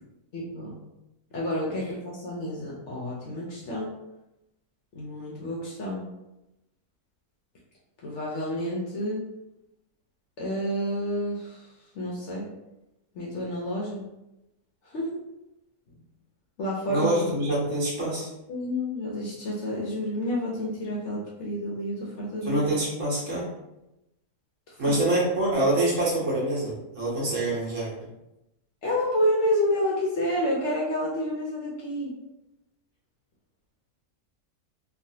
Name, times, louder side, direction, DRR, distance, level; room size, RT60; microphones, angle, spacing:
voice 1, 0.3-0.8 1.3-3.9 4.9-6.1 8.0-9.2 10.4-11.7 11.9-12.5 13.1-14.1 14.9-15.1 16.6-17.1 18.5-22.6 24.7-24.9 28.8-32.1, equal, 60° left, -4 dB, 0.8 m, -29 dB
voice 2, 16.9-18.3 22.4-23.5 24.8-27.9, right 1 dB, 55° right, -7 dB, 1.3 m, -25 dB
3.1 x 2.4 x 2.7 m, 0.93 s
omnidirectional pair, 1.6 m